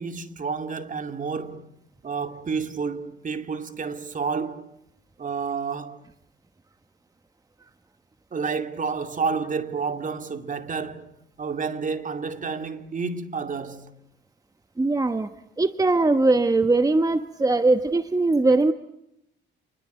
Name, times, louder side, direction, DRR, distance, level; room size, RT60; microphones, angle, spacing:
voice 1, 0.0-1.7 2.0-4.6 5.2-6.0 8.3-13.9, right 5 dB, 40° right, 2.5 m, -30 dB
voice 2, 14.8-15.3 15.6-18.7, right 2 dB, 20° right, 1.1 m, -20 dB
28.5 x 21.5 x 9.3 m
cardioid pair, 90°, 20 cm